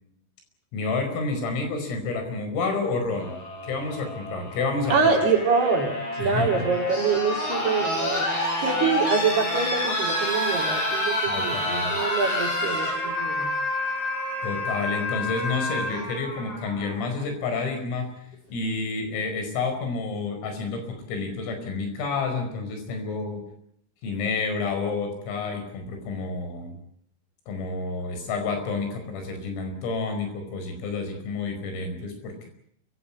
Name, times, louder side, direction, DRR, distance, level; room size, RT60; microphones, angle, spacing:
voice 1, 0.7-5.0 6.2-6.7 11.3-12.0 14.4-18.1 18.5-23.5 24.0-26.8 27.5-32.5, left 4 dB, 85° left, 6 dB, 7.7 m, -29 dB
sound 1, 3.1-17.1 18.3-18.4, left 1 dB, 30° left, 6.7 m, -28 dB
voice 2, 4.9-13.5, right 5 dB, 55° right, 2 dB, 5.4 m, -25 dB
28.0 x 16.5 x 8.6 m, 0.71 s
omnidirectional pair, 5.8 m